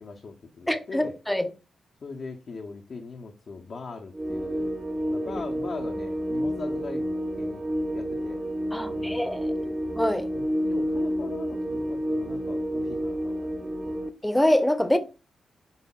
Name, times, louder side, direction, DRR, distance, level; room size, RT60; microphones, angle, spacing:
voice 1, 0.0-1.2 2.0-4.7 5.0-7.6 7.9-8.4 8.9-9.3 9.6-9.8 10.3-13.3 13.6-14.0, left 4 dB, 60° left, 0.6 m, -40 dB
voice 2, 0.7-1.5 8.7-9.5 9.9-10.3 14.2-15.0, left 1 dB, 10° left, 0.7 m, -24 dB
sound 1, 4.1-14.1, equal, 30° right, 0.8 m, -30 dB
5.5 x 3.4 x 2.2 m
supercardioid pair, 40°, 0 cm